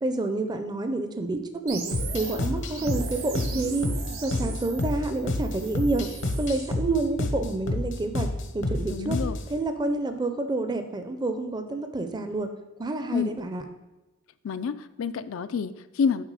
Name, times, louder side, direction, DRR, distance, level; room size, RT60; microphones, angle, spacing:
voice 1, 0.0-1.9 2.1-3.9 4.2-6.1 6.4-8.3 8.5-9.2 9.5-12.5 12.8-13.6, right 2 dB, 20° right, 7 dB, 0.5 m, -28 dB
sound 1, 1.7-6.8, right 5 dB, 85° right, 1.2 m, -39 dB
sound 2, 1.9-9.5, left 1 dB, 60° left, 0.8 m, -30 dB
voice 2, 8.9-9.4 13.1-13.4 14.4-16.2, left 6 dB, 75° left, 13 dB, 0.4 m, -28 dB
7.5 x 4.7 x 4.8 m, 1.1 s
head